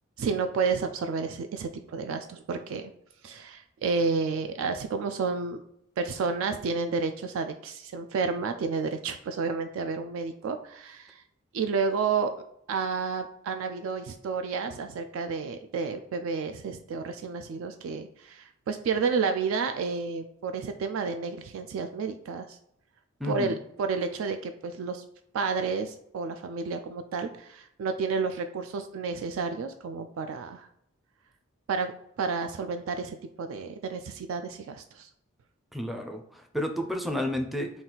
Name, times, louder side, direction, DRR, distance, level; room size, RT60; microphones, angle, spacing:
voice 1, 0.2-2.9 3.2-5.6 6.0-11.2 11.5-12.3 12.7-22.6 23.2-25.0 25.3-30.7 31.7-35.1, right 5 dB, 70° right, 7 dB, 0.3 m, -31 dB
voice 2, 23.2-23.6 35.7-37.7, left 1 dB, ahead, 3 dB, 0.4 m, -31 dB
4.0 x 2.4 x 3.8 m, 0.75 s
head